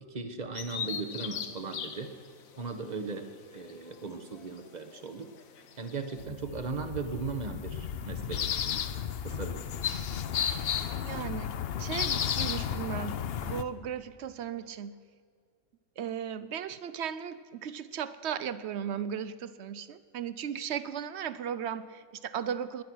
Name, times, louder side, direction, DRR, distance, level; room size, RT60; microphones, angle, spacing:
voice 1, 0.0-2.1 2.6-5.3 5.8-8.5 9.2-9.6, right 4 dB, 35° right, 8 dB, 1.0 m, -37 dB
Bird vocalization bird call bird song, 0.5-6.2, left 7 dB, 75° left, 1.4 m, -42 dB
sound 1, 6.2-13.6, left 8 dB, 55° left, 0.7 m, -33 dB
voice 2, 10.7-13.2 13.5-15.0 16.0-22.8, right 8 dB, 60° right, 14 dB, 0.8 m, -36 dB
21.0 x 10.0 x 6.2 m, 2.1 s
omnidirectional pair, 1.5 m